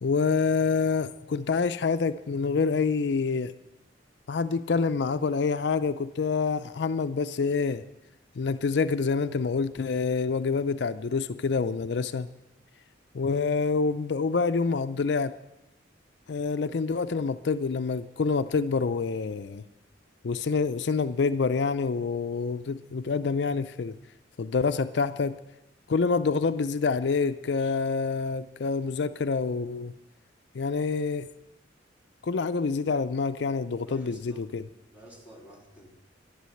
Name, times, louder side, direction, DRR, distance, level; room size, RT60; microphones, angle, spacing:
voice 1, 0.0-3.5 4.3-7.8 8.4-12.3 13.1-15.3 16.3-19.6 20.2-24.0 24.4-25.4 25.9-29.9 30.5-31.3 32.2-34.6, left 4 dB, 65° left, 11 dB, 0.4 m, -27 dB
voice 2, 33.8-34.5 34.9-35.9, right 1 dB, 10° right, -5 dB, 3.2 m, -50 dB
11.5 x 11.5 x 7.7 m, 0.94 s
head